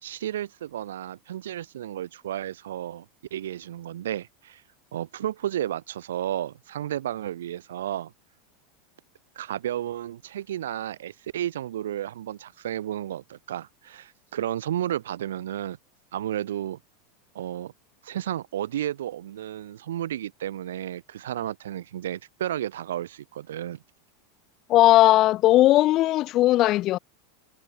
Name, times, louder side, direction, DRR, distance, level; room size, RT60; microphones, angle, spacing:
voice 1, 0.0-3.0 3.3-4.6 4.9-8.1 9.3-15.8 16.1-16.8 17.3-17.7 18.0-23.8, right 11 dB, 70° right, 1.4 m, -32 dB
voice 2, 24.7-27.0, left 15 dB, 45° left, 0.5 m, -18 dB
hypercardioid pair, 85°, 0 cm